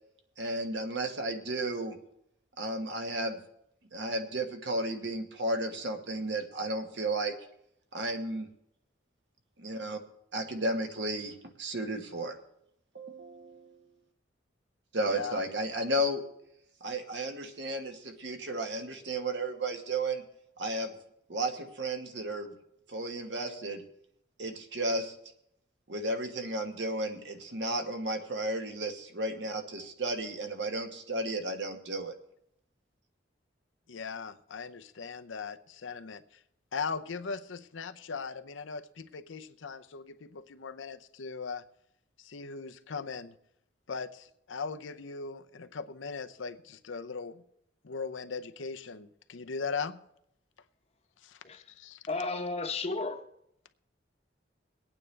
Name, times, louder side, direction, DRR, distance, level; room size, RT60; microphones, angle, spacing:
voice 1, 0.4-2.0 2.6-3.4 3.9-7.3 7.9-8.5 9.6-10.0 10.3-12.4 12.9-13.8 14.9-16.2 16.8-20.2 20.6-20.9 21.3-22.5 22.9-23.8 24.4-25.1 25.9-32.1, right 1 dB, 65° right, 1.3 m, -33 dB
voice 2, 15.0-15.5 33.9-36.2 36.7-41.6 42.2-43.3 43.9-47.4 47.8-50.0 51.2-52.0, left 5 dB, 90° left, 0.6 m, -39 dB
voice 3, 51.4-51.8 52.1-53.3, left 3 dB, 35° left, 0.9 m, -34 dB
23.0 x 9.0 x 3.3 m
head